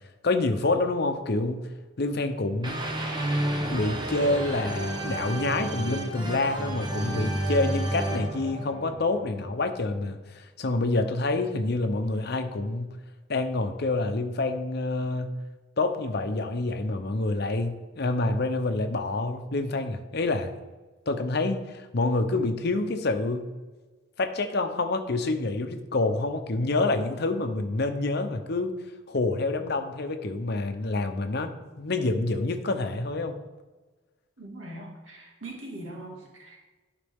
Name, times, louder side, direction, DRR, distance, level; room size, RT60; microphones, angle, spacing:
voice 1, 0.2-1.6 2.0-2.8 3.7-12.9 13.3-15.4 15.8-20.5 21.1-23.5 24.2-28.7 29.1-33.4, left 2 dB, 55° left, 7 dB, 0.7 m, -27 dB
sound 1, 2.6-9.6, right 1 dB, 25° right, 1.0 m, -31 dB
voice 2, 34.4-36.6, right 1 dB, 90° right, -1 dB, 2.0 m, -41 dB
11.5 x 5.0 x 3.6 m, 1.2 s
head